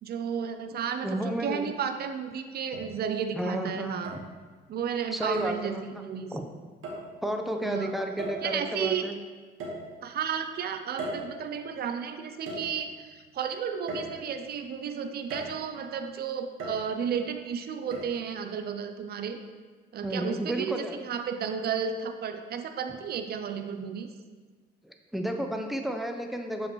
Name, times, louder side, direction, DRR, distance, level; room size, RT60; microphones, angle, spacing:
voice 1, 0.0-4.2 4.7-6.3 7.6-8.0 8.4-9.0 10.0-19.4 19.9-24.1, right 7 dB, 50° right, 7 dB, 0.5 m, -33 dB
voice 2, 1.0-1.7 3.3-4.0 5.1-6.0 6.3-6.4 7.2-9.1 20.0-21.0 24.8-26.7, equal, ahead, 4 dB, 0.7 m, -32 dB
sound 1, 1.7-1.8 2.7-3.3 4.0-4.7 5.3-5.7 6.8-7.1 8.2-8.7 9.6-10.3 11.0-11.8 12.5-13.1 13.9-14.6 15.3-15.8 16.6-17.2 17.9-18.0, right 1 dB, 90° right, 1.4 m, -38 dB
7.0 x 5.2 x 3.1 m, 1.4 s
cardioid pair, 90°, 20 cm